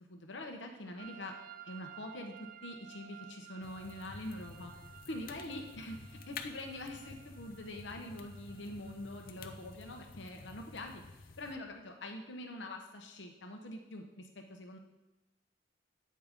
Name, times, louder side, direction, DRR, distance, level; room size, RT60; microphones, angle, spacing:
voice 1, 0.1-1.3 1.6-4.7 5.1-14.8, left 1 dB, 70° left, 3 dB, 0.8 m, -44 dB
sound 1, 1.0-10.1, right 11 dB, 45° right, 0.3 m, -55 dB
sound 2, 3.6-11.6, left 4 dB, 50° left, 0.5 m, -51 dB
8.5 x 5.2 x 3.5 m, 1.0 s
head